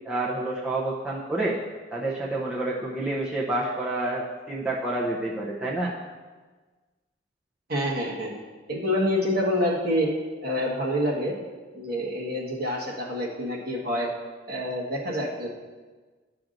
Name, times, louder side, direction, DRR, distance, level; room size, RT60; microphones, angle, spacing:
voice 1, 0.0-1.6 1.9-5.9, right 2 dB, 5° right, -6 dB, 0.6 m, -28 dB
voice 2, 7.7-8.3 8.7-10.1 10.4-11.3 11.7-14.1 14.5-15.5, equal, 50° right, -4 dB, 1.4 m, -27 dB
11.0 x 5.9 x 2.6 m, 1.4 s
head